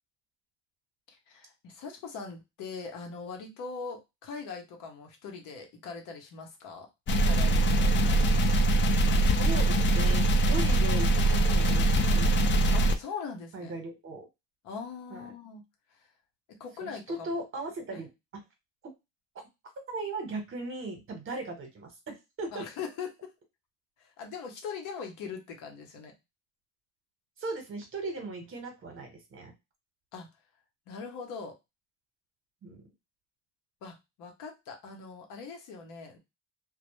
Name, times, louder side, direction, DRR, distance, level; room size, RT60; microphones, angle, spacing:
voice 1, 1.1-6.9 7.2-7.9 12.7-13.7 14.6-15.6 15.9-16.1 16.5-17.4 17.9-18.0 22.5-23.1 24.0-26.1 30.1-30.3 30.9-31.5 33.8-36.2, left 5 dB, 75° left, 3 dB, 0.8 m, -41 dB
sound 1, 7.1-13.0, right 1 dB, 35° left, 0.4 m, -23 dB
voice 2, 9.4-12.3 13.5-14.3 15.1-15.3 16.8-18.1 19.9-22.6 27.4-29.5 32.6-32.9, right 2 dB, 40° right, 4 dB, 1.0 m, -38 dB
2.1 x 2.0 x 3.0 m, 0.23 s
cardioid pair, 90°, 32 cm